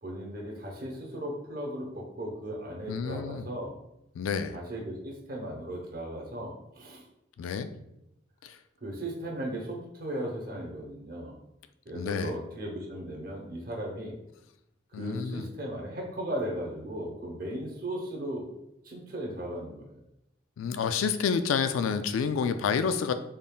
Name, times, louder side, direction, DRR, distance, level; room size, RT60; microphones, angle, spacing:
voice 1, 0.0-3.7 4.5-7.0 8.8-11.3 11.8-14.1 14.9-18.5 18.8-20.0, right 1 dB, 45° right, -2 dB, 0.9 m, -37 dB
voice 2, 2.9-3.5 4.2-4.6 7.4-7.7 8.4-8.6 11.9-12.3 14.9-15.5 20.6-23.1, left 6 dB, 85° left, 10 dB, 0.3 m, -29 dB
3.8 x 3.6 x 2.3 m, 0.84 s
head